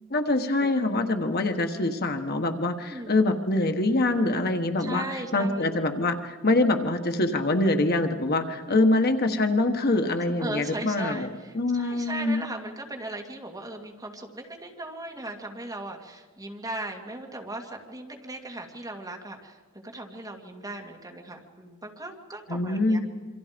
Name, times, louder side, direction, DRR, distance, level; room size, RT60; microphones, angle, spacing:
voice 1, 0.1-5.0 5.3-11.3 11.5-12.4 22.5-23.0, left 2 dB, 50° left, 6 dB, 1.4 m, -24 dB
voice 2, 2.8-3.2 4.8-5.7 7.1-7.2 8.7-8.9 10.2-19.6 19.9-23.0, right 2 dB, 15° right, 1 dB, 2.5 m, -38 dB
27.5 x 25.0 x 5.2 m, 1.5 s
head